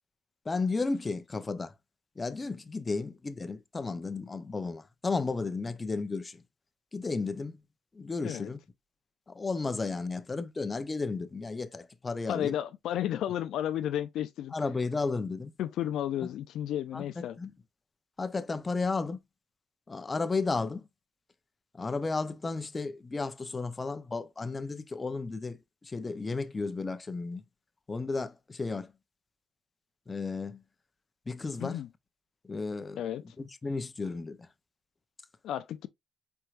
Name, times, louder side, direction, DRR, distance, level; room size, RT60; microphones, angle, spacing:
voice 1, 0.4-1.7 2.2-6.4 6.9-7.6 7.9-8.6 9.3-12.6 14.5-15.5 16.9-17.5 18.2-19.2 19.9-20.9 21.7-27.4 27.9-28.9 30.1-30.6 31.3-31.8 32.4-33.0 33.4-34.5, left 3 dB, 25° left, 0.7 m, -33 dB
voice 2, 12.3-14.5 15.6-17.4 31.6-31.9 33.0-33.4 35.4-35.9, left 11 dB, 80° left, 0.4 m, -33 dB
4.5 x 4.5 x 2.5 m
cardioid pair, 90°, 0 cm